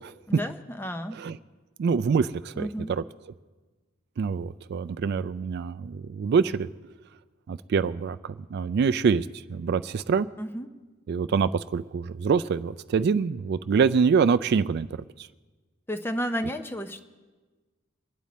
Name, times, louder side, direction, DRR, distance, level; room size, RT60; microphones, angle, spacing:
voice 1, 0.3-1.2 2.6-2.9 10.4-10.7 15.9-17.0, equal, 10° left, 8 dB, 0.6 m, -32 dB
voice 2, 1.8-3.0 4.2-6.7 7.5-8.2 8.5-10.3 11.1-14.9 15.2-15.3, right 5 dB, 50° right, 12 dB, 0.3 m, -25 dB
23.0 x 9.0 x 4.2 m, 1.3 s
head